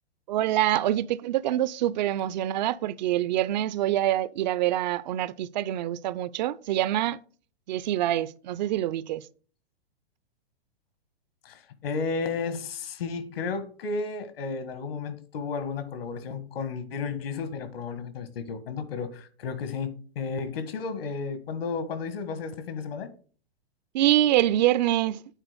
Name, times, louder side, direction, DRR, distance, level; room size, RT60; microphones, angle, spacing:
voice 1, 0.3-7.2 7.7-9.2 23.9-25.2, right 13 dB, 45° right, 0.5 m, -25 dB
voice 2, 11.4-23.1, left 5 dB, 65° left, 1.7 m, -33 dB
9.0 x 3.9 x 6.6 m
hypercardioid pair, 125°, 31 cm